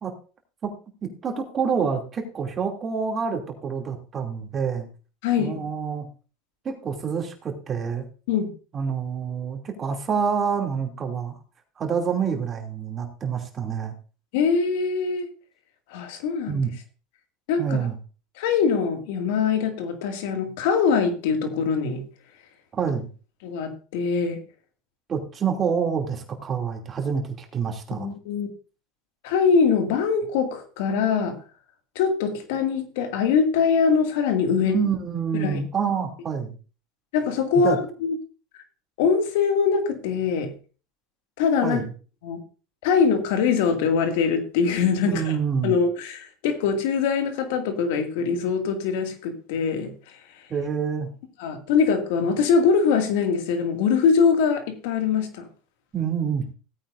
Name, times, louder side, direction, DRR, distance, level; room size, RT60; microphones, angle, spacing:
voice 1, 1.2-4.9 5.4-6.1 6.6-8.0 8.7-11.4 11.8-13.9 16.5-16.7 17.6-18.0 22.7-23.1 25.1-28.1 34.6-36.6 37.5-37.8 41.6-41.9 45.1-45.8 50.5-51.1 55.9-56.4, right 6 dB, 30° right, 3 dB, 2.8 m, -27 dB
voice 2, 5.2-5.7 8.3-8.5 14.3-15.3 15.9-16.6 17.5-17.8 18.4-22.0 23.4-24.4 27.9-28.5 29.2-31.4 32.0-34.8 35.4-35.6 37.1-38.1 39.0-40.5 41.4-41.8 42.2-42.4 42.8-45.2 45.6-49.9 51.4-55.5, left 6 dB, 75° left, 5 dB, 2.3 m, -23 dB
16.5 x 8.9 x 2.6 m, 0.36 s
supercardioid pair, 105°, 0 cm